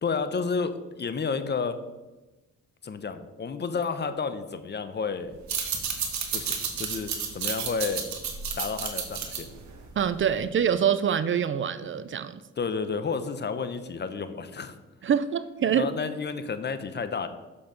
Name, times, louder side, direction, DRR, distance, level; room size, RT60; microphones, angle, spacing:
voice 1, 0.0-1.8 2.8-5.4 6.3-8.0 8.6-9.5 12.6-14.7 15.7-17.3, left 5 dB, 35° left, 10 dB, 0.9 m, -31 dB
sound 1, 5.4-10.5, right 6 dB, 65° right, 1.7 m, -32 dB
voice 2, 10.0-12.4 15.0-15.9, right 8 dB, 40° right, 13 dB, 0.5 m, -25 dB
7.5 x 6.9 x 5.2 m, 1.1 s
cardioid pair, 90°, 30 cm